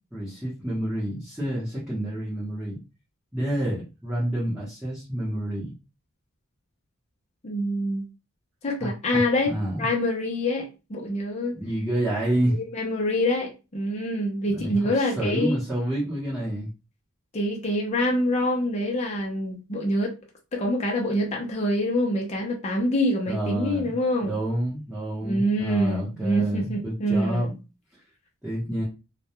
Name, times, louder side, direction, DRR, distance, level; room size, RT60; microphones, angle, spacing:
voice 1, 0.1-2.8 3.3-5.7 8.8-9.8 11.5-12.6 14.5-16.7 23.3-23.9 24.2-27.5 28.4-28.8, right 1 dB, 5° right, 0.8 m, -29 dB
voice 2, 7.4-8.0 8.6-11.6 12.5-15.6 17.3-20.1 20.5-24.4 25.2-27.5, left 1 dB, 30° left, 0.5 m, -26 dB
2.2 x 2.2 x 2.8 m
head